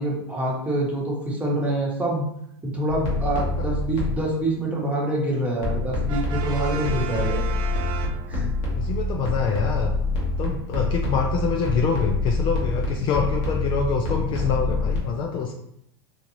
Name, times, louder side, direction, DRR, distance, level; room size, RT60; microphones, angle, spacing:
voice 1, 0.0-2.3 2.6-7.4 8.3-8.5, right 1 dB, 10° right, -3 dB, 1.2 m, -26 dB
sound 1, 2.9-4.3 5.6-15.0, left 2 dB, 60° left, 1.3 m, -26 dB
Brass instrument, 6.1-8.7, right 9 dB, 40° right, 0.4 m, -35 dB
voice 2, 8.8-10.0 10.4-15.5, left 6 dB, 40° left, 2 dB, 0.4 m, -25 dB
3.8 x 2.4 x 3.0 m, 0.74 s
hypercardioid pair, 105°, 13 cm